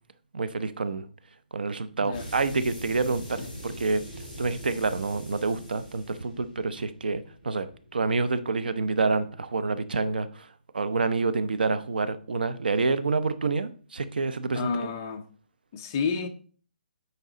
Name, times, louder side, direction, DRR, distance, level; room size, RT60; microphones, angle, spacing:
voice 1, 0.3-1.1 1.5-4.0 4.4-7.7 7.9-10.5 10.7-14.9, right 3 dB, 80° right, 0.9 m, -28 dB
sound 1, 2.1-8.6, equal, 15° right, 4.2 m, -42 dB
voice 2, 14.5-15.3 15.7-16.3, left 5 dB, 20° left, 0.6 m, -30 dB
9.2 x 4.6 x 3.9 m
hypercardioid pair, 175°, 5 cm